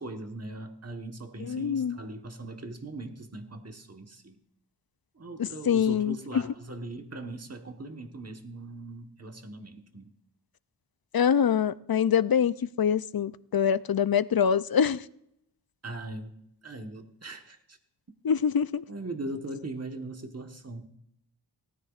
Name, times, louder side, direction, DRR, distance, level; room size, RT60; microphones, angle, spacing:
voice 1, 0.0-4.4 5.1-10.1 15.8-16.4 16.6-17.8 18.9-20.9, right 2 dB, 35° right, 4 dB, 1.3 m, -40 dB
voice 2, 1.4-2.0 5.4-6.2 11.1-15.0 18.2-18.8, left 8 dB, 60° left, 16 dB, 0.5 m, -25 dB
18.5 x 13.5 x 2.4 m, 0.79 s
wide cardioid pair, 40°, 42 cm